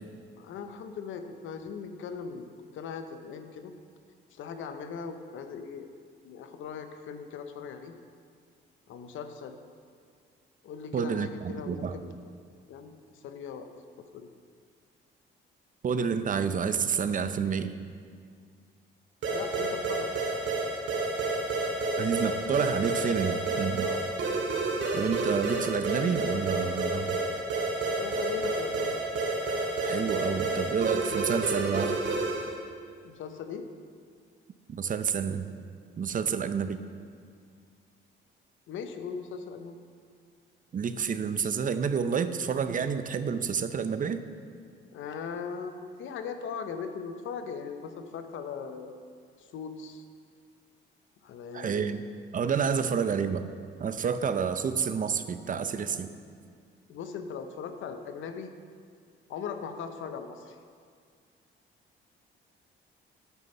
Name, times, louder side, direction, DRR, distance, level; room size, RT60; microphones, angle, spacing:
voice 1, 0.4-3.7 4.3-5.9 6.2-7.9 8.9-9.6 10.6-12.2 12.7-12.9 13.2-13.7 14.1-14.3 19.3-20.1 23.8-24.0 27.8-28.9 33.0-33.7 38.7-39.8 44.9-49.0 49.5-50.0 51.2-52.0 56.9-58.5 59.3-60.5, left 6 dB, 75° left, 8 dB, 0.8 m, -39 dB
voice 2, 10.9-12.0 15.8-17.7 22.0-23.9 24.9-27.2 29.8-32.0 34.7-35.5 36.0-36.8 40.7-44.2 51.5-52.0 52.3-53.5 53.8-56.1, right 6 dB, 40° right, 11 dB, 0.6 m, -29 dB
sound 1, 19.2-32.6, right 2 dB, 75° right, 2.2 m, -30 dB
9.7 x 8.3 x 5.4 m, 2.1 s
cardioid pair, 90°, 20 cm